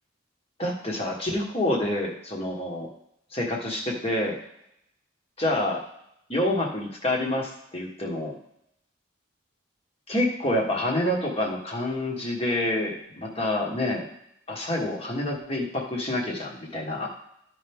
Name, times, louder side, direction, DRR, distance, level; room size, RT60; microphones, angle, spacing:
voice 1, 0.6-2.9 3.3-4.4 5.4-5.8 6.3-8.4 10.1-14.0 14.5-17.1, left 1 dB, 30° left, -1 dB, 1.4 m, -27 dB
13.5 x 4.6 x 3.6 m, 0.79 s
head